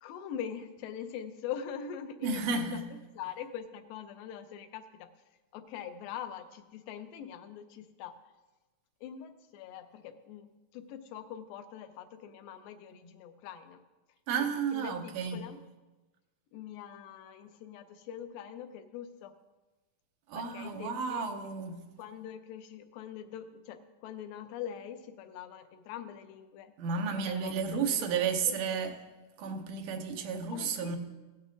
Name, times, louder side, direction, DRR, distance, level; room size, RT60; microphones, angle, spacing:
voice 1, 0.0-5.1 5.5-8.1 9.0-13.8 14.4-15.6 16.5-19.4 20.3-21.3 22.0-26.7 27.1-28.8 30.5-31.0, left 8 dB, 85° left, 2.5 m, -43 dB
voice 2, 2.2-2.8 14.3-15.4 20.3-21.8 26.8-28.9 29.4-31.0, right 5 dB, 75° right, 1.5 m, -32 dB
16.5 x 10.0 x 2.6 m
omnidirectional pair, 4.0 m